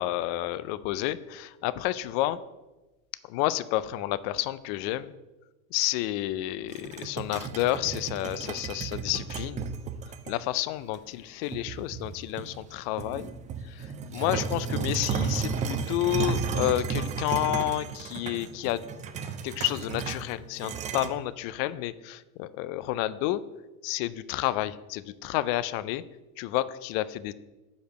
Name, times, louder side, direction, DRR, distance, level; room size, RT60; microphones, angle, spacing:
voice 1, 0.0-2.4 3.3-5.1 5.7-9.6 10.3-13.3 13.7-18.8 19.4-23.4 23.8-26.0 26.4-27.3, left 15 dB, 45° left, 16 dB, 0.4 m, -30 dB
sound 1, 6.7-10.3 10.9-11.0 11.5-12.6 13.0-21.1, right 6 dB, 20° right, 0.3 m, -33 dB
5.1 x 5.0 x 6.4 m, 1.1 s
hypercardioid pair, 95°, 45 cm